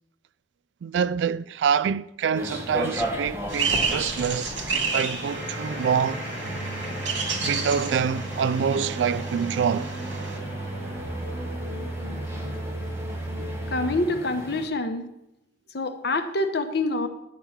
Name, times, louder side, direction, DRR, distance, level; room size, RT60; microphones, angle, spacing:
voice 1, 0.8-6.2 7.4-9.9, right 7 dB, 70° right, 0.3 m, -26 dB
sound 1, 2.3-14.6, equal, 15° right, 1.3 m, -36 dB
sound 2, 3.5-10.4, right 4 dB, 85° right, 1.9 m, -31 dB
sound 3, 5.2-14.0, right 1 dB, 50° right, 3.8 m, -34 dB
voice 2, 13.7-15.0 15.7-17.1, left 2 dB, 60° left, 0.9 m, -26 dB
10.5 x 4.6 x 7.2 m
head